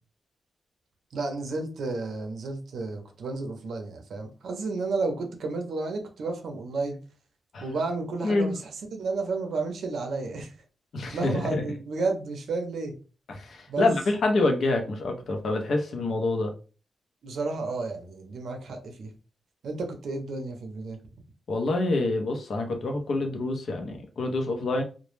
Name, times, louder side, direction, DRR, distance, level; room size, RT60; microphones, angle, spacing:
voice 1, 1.1-7.0 7.6-8.6 8.9-10.5 11.1-12.9 13.7-13.9 17.2-19.1 19.6-21.0, right 3 dB, 70° right, 4 dB, 0.5 m, -31 dB
voice 2, 10.9-11.8 13.3-16.5 21.5-24.8, left 2 dB, 60° left, 3 dB, 0.5 m, -27 dB
2.1 x 2.0 x 3.1 m, 0.36 s
wide cardioid pair, 145°, 0 cm